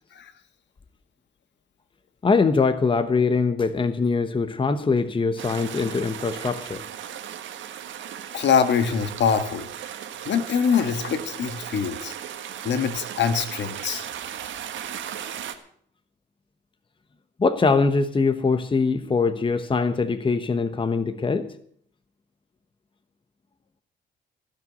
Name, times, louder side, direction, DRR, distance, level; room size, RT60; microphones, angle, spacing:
voice 1, 2.2-6.8 17.4-21.5, left 4 dB, 25° left, 1.0 m, -22 dB
sound 1, 5.4-15.6, right 9 dB, 75° right, 1.5 m, -36 dB
voice 2, 8.3-9.7 10.2-12.1 12.7-14.0, left 6 dB, 65° left, 1.6 m, -23 dB
16.5 x 6.1 x 9.5 m
cardioid pair, 90°, 20 cm